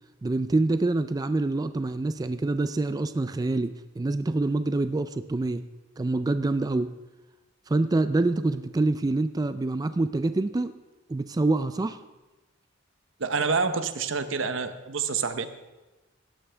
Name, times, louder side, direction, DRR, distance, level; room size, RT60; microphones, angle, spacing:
voice 1, 0.2-5.6 6.0-6.9 7.7-10.7 11.1-12.0, right 2 dB, 20° right, 11 dB, 0.3 m, -26 dB
voice 2, 13.2-15.5, right 5 dB, 75° right, 10 dB, 0.9 m, -27 dB
16.5 x 12.0 x 3.4 m, 1.1 s
head